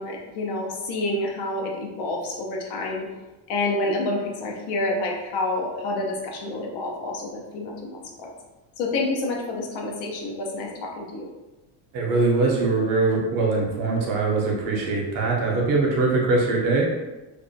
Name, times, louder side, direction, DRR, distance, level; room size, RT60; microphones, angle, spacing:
voice 1, 0.0-3.1 3.5-8.3 8.8-11.3, left 2 dB, 70° left, 0 dB, 0.7 m, -28 dB
voice 2, 11.9-16.8, right 3 dB, 45° right, -2 dB, 0.7 m, -22 dB
2.5 x 2.1 x 2.6 m, 1.1 s
cardioid pair, 135°, 44 cm